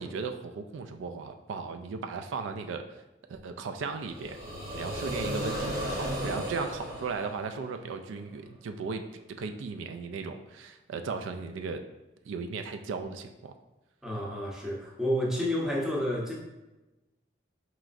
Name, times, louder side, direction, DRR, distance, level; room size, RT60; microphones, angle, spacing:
voice 1, 0.0-2.8 3.3-4.4 4.7-9.0 9.4-11.8 12.3-13.5, right 4 dB, 80° right, 7 dB, 0.3 m, -36 dB
sound 1, 4.0-8.0, equal, 45° right, 0.9 m, -35 dB
voice 2, 14.0-16.3, equal, 5° right, -4 dB, 0.6 m, -30 dB
4.6 x 3.1 x 2.5 m, 1.0 s
head